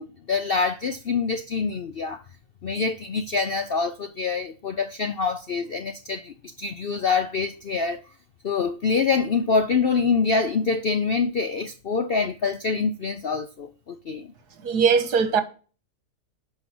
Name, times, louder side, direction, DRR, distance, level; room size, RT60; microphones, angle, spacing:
voice 1, 0.0-2.2 2.6-8.0 8.4-14.3, left 5 dB, 60° left, 0.6 m, -25 dB
voice 2, 14.6-15.4, right 6 dB, 75° right, 1.9 m, -20 dB
11.5 x 5.5 x 6.0 m
omnidirectional pair, 1.7 m